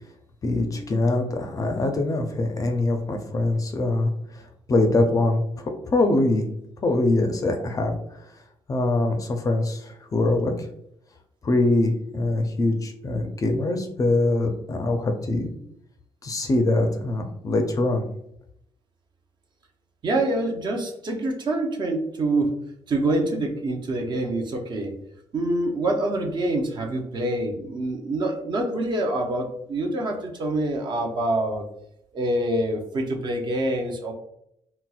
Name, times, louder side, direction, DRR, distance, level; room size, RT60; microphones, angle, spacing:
voice 1, 0.4-4.4 4.7-5.4 5.9-6.5 6.8-7.9 8.7-10.5 11.4-15.5 16.2-18.1, left 2 dB, 30° left, 4 dB, 0.4 m, -23 dB
voice 2, 20.0-22.6 22.9-24.9 25.3-31.6 32.1-34.1, right 1 dB, 45° right, 1 dB, 0.6 m, -26 dB
4.1 x 2.0 x 2.3 m, 0.75 s
cardioid pair, 125°, 11 cm